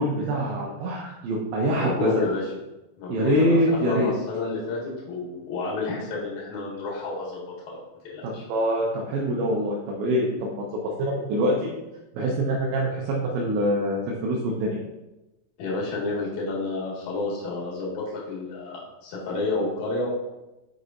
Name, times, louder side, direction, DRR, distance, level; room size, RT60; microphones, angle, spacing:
voice 1, 0.0-2.1 3.1-4.1 8.2-10.5 10.8-11.7 12.1-14.8, equal, 80° right, -3 dB, 2.9 m, -25 dB
voice 2, 1.7-2.4 3.0-4.8 5.1-7.8 8.0-8.4 15.6-20.1, left 3 dB, 55° left, -5 dB, 2.4 m, -30 dB
8.2 x 5.2 x 2.6 m, 1.0 s
omnidirectional pair, 5.6 m